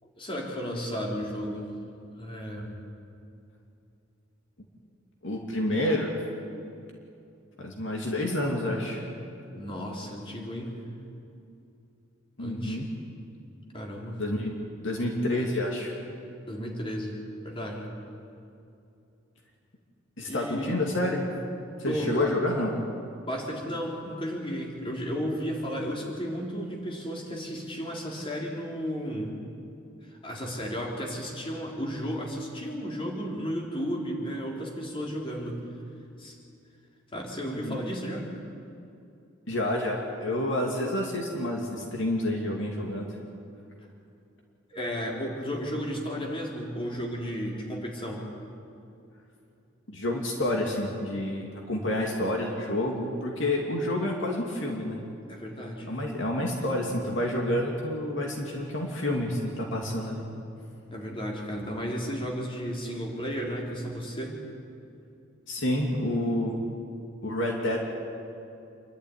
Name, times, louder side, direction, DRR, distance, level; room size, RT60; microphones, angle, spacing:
voice 1, 0.0-1.7 2.2-2.8 9.5-10.7 12.4-12.8 13.7-14.2 16.5-17.2 17.4-17.9 20.3-20.7 21.9-22.4 23.2-29.3 30.1-35.6 36.2-36.4 37.1-38.3 44.7-48.2 55.3-55.9 60.9-64.4, equal, 25° left, -2 dB, 3.8 m, -33 dB
voice 2, 5.2-6.1 7.6-9.0 12.4-12.9 14.2-14.5 14.8-15.9 20.2-21.3 21.8-22.8 37.5-37.8 39.5-43.1 49.9-55.0 55.9-60.3 65.5-66.6 67.2-67.8, left 1 dB, 65° left, 0 dB, 2.8 m, -29 dB
27.5 x 12.5 x 9.8 m, 2.6 s
head